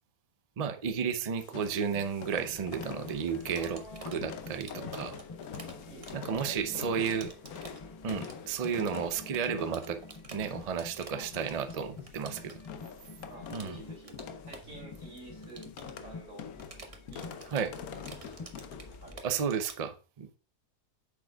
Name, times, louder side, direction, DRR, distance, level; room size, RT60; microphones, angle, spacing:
voice 1, 0.6-3.8 4.1-5.2 6.1-7.3 8.0-10.0 10.3-12.5 13.5-13.8 17.5-17.7 19.2-20.4, right 7 dB, 70° right, 0.3 m, -32 dB
sound 1, 1.4-19.1, left 7 dB, 70° left, 1.2 m, -46 dB
sound 2, 1.9-19.2, left 3 dB, 25° left, 0.6 m, -49 dB
sound 3, 3.1-19.8, right 3 dB, 30° right, 0.8 m, -51 dB
voice 2, 3.5-4.2 4.7-5.3 5.9-7.6 11.1-11.3 11.7-12.3 13.3-14.1 14.4-15.6 16.0-16.4 17.1-18.4 19.0-19.5, right 2 dB, 55° right, 3.4 m, -50 dB
8.4 x 6.4 x 2.3 m
omnidirectional pair, 1.6 m